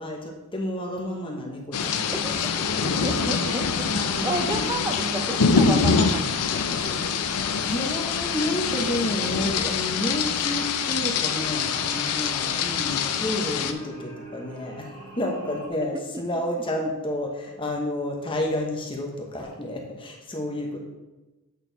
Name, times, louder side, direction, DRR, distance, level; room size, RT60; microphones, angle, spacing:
voice 1, 0.0-3.1 3.8-5.6 7.6-14.9 15.2-20.8, left 1 dB, 25° left, 0 dB, 1.0 m, -31 dB
sound 1, 1.7-13.7, left 5 dB, 85° left, 0.5 m, -25 dB
voice 2, 2.6-3.9 4.2-7.0 16.1-16.2, right 1 dB, 15° right, 6 dB, 0.5 m, -32 dB
sound 2, 2.9-15.7, right 2 dB, 70° right, 1.8 m, -43 dB
8.2 x 4.4 x 4.0 m, 1.1 s
head